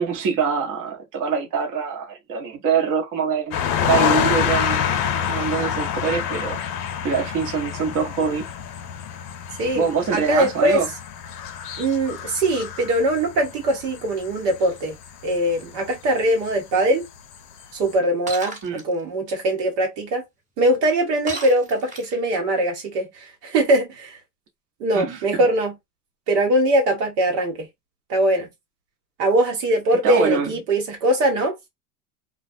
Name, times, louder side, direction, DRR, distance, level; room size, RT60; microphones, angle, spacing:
voice 1, 0.0-3.6 3.9-4.8 5.3-6.6 7.0-8.5 9.8-10.9 18.6-18.8 24.9-25.5 30.0-30.5, right 6 dB, 40° right, 0.9 m, -24 dB
sound 1, 3.5-15.9 16.4-16.6, left 8 dB, 75° left, 0.7 m, -27 dB
voice 2, 10.1-10.8 11.8-14.9 15.2-17.1 17.7-20.2 20.6-24.2 24.8-25.7 26.3-27.7 28.1-28.5 29.2-31.5, right 1 dB, 80° right, 1.2 m, -21 dB
Shatter, 18.3-18.8 21.3-22.3, right 2 dB, 15° right, 1.1 m, -34 dB
2.2 x 2.2 x 2.6 m
hypercardioid pair, 85°, 48 cm